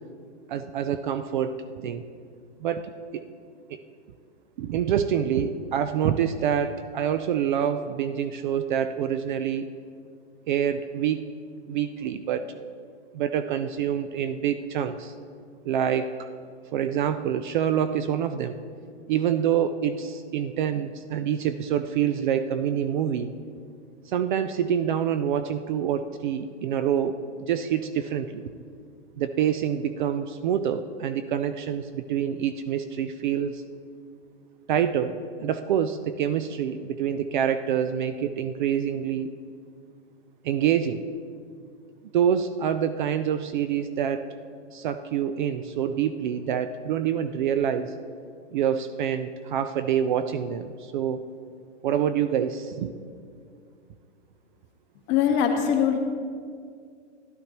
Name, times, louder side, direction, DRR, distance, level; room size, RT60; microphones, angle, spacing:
voice 1, 0.5-1.5 1.8-2.0 2.6-3.2 3.7-3.8 4.6-9.7 10.5-11.3 11.7-12.5 13.1-15.1 15.6-16.3 16.7-18.6 19.1-23.3 24.1-27.2 27.5-28.4 29.2-33.6 34.7-35.1 35.4-39.3 40.4-41.0 42.1-44.3 44.7-47.9 48.5-51.2 51.8-52.9, right 9 dB, 45° right, 10 dB, 0.4 m, -26 dB
voice 2, 55.1-56.0, left 8 dB, 30° left, 2 dB, 1.3 m, -22 dB
13.0 x 11.5 x 3.0 m, 2.2 s
hypercardioid pair, 125°, 36 cm